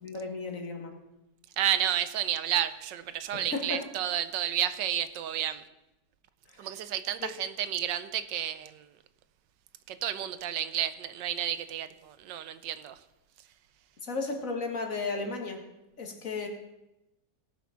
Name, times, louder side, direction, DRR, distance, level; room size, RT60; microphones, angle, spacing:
voice 1, 0.0-0.9 3.3-3.8 6.5-6.7 7.2-7.3 14.0-15.6 16.0-16.5, left 3 dB, 50° left, 4 dB, 1.9 m, -34 dB
voice 2, 1.6-5.6 6.6-8.9 9.9-13.0, right 11 dB, 85° right, 13 dB, 1.4 m, -31 dB
18.0 x 6.1 x 5.7 m, 0.93 s
omnidirectional pair, 1.9 m